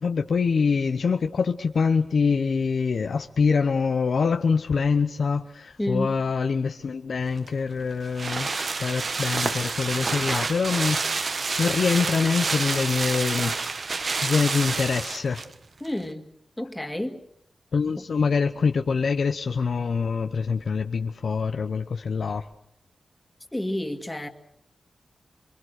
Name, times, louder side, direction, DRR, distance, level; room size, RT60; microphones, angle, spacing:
voice 1, 0.0-8.5 8.8-11.0 11.6-13.5 14.0-15.4 17.7-22.5, left 5 dB, 75° left, 0.9 m, -25 dB
voice 2, 5.8-6.2 15.8-17.2 23.5-24.3, left 1 dB, 10° left, 2.1 m, -30 dB
sound 1, 7.4-15.5 15.9-16.0, right 4 dB, 55° right, 1.2 m, -28 dB
27.5 x 23.5 x 6.5 m
wide cardioid pair, 110°, 0 cm